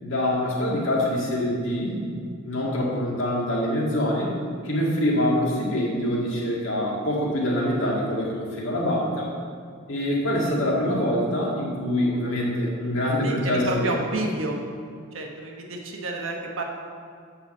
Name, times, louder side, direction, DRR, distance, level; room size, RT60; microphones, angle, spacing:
voice 1, 0.0-2.1 2.4-4.3 4.6-9.3 9.9-13.9, left 1 dB, 65° left, -4 dB, 2.0 m, -25 dB
voice 2, 13.2-14.6 15.1-16.6, right 1 dB, 70° right, 1 dB, 1.2 m, -29 dB
7.1 x 5.8 x 7.2 m, 2.2 s
head